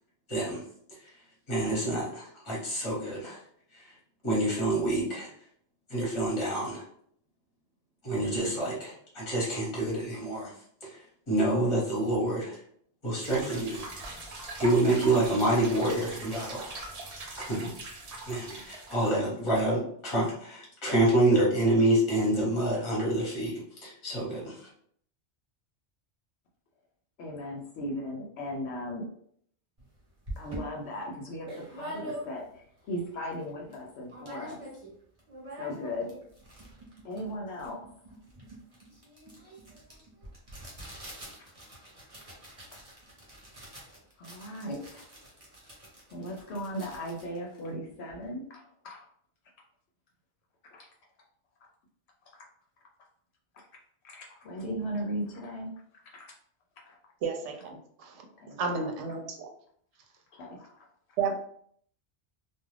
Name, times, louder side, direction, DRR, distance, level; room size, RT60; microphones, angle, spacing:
voice 1, 0.3-0.6 1.5-3.4 3.7-3.9 4.2-5.3 5.9-6.8 8.0-10.5 10.8-11.0 11.3-12.6 13.0-13.8 14.6-16.7 17.3-17.7 18.3-23.5 23.8-24.7, right 1 dB, 25° left, -6 dB, 0.9 m, -27 dB
sound 1, 13.2-19.1, right 2 dB, 45° right, 0.5 m, -41 dB
voice 2, 27.2-29.1 30.4-34.6 35.5-36.1 37.0-37.8 41.3-41.4 44.2-45.1 46.1-49.1 50.7-50.9 54.0-55.7 56.1-56.3 56.9-57.0 58.4-58.9 60.3-60.9, equal, 70° left, 0 dB, 0.8 m, -37 dB
sound 2, 29.8-29.9 30.3-32.6 33.1-33.2 33.3-33.8 34.1-34.9 35.2-48.3, right 1 dB, 30° right, 1.0 m, -45 dB
voice 3, 57.2-58.2 58.6-59.5 61.2-61.4, right 5 dB, 85° right, 3 dB, 0.9 m, -32 dB
2.4 x 2.3 x 3.1 m, 0.63 s
omnidirectional pair, 1.2 m